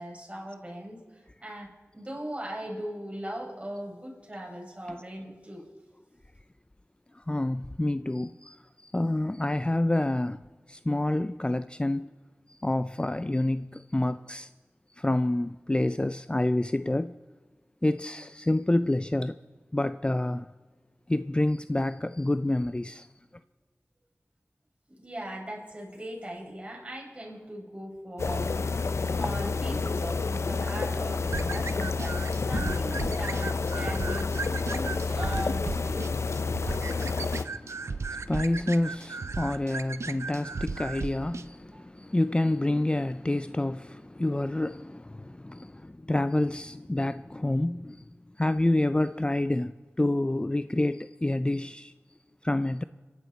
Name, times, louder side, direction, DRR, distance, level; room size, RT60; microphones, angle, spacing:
voice 1, 0.0-5.7 24.9-28.6 28.9-36.0 41.7-41.8, equal, 25° right, 5.5 m, -39 dB
voice 2, 7.1-10.4 10.7-12.1 12.5-14.5 15.0-17.1 17.8-19.4 19.7-20.5 21.1-23.1 37.4-48.0 48.4-51.9 52.4-52.8, left 1 dB, 20° left, 0.4 m, -28 dB
sound 1, 28.2-37.4, left 4 dB, 85° left, 0.5 m, -29 dB
sound 2, 31.3-41.5, right 4 dB, 90° right, 0.5 m, -36 dB
27.5 x 11.0 x 4.1 m
wide cardioid pair, 40°, 5 cm